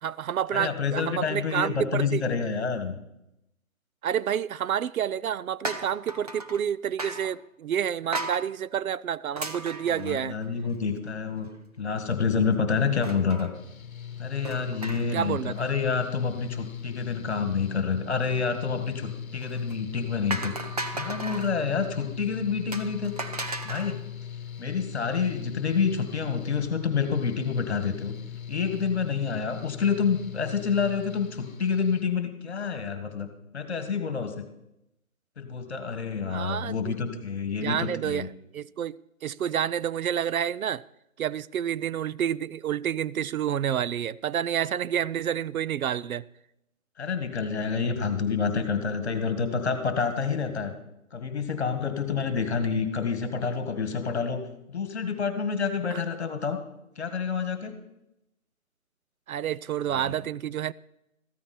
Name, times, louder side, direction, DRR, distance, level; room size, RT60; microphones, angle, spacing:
voice 1, 0.0-2.2 4.0-10.4 15.1-15.6 36.3-36.9 37.6-38.3 38.5-40.8 41.2-46.2 55.9-56.0 59.3-60.7, right 9 dB, 85° right, 0.6 m, -29 dB
voice 2, 0.5-3.0 10.0-11.5 11.8-13.5 14.2-20.6 20.9-23.1 23.6-24.0 24.6-28.1 28.5-34.4 35.4-38.3 47.0-50.7 51.1-56.6 57.0-57.7 59.9-60.1, left 5 dB, 50° left, 1.8 m, -28 dB
sound 1, 5.6-6.6 7.0-7.3 8.1-8.4 9.4-10.7 11.1-11.2 11.4-11.5 13.0-13.5 14.4-15.3 15.5-15.9 19.4-19.7 20.3-21.5 22.7-24.0, right 2 dB, 30° right, 0.8 m, -35 dB
Mechanical fan, 13.5-32.0, left 8 dB, 75° left, 1.1 m, -40 dB
15.0 x 13.5 x 4.3 m
hypercardioid pair, 170°, 41 cm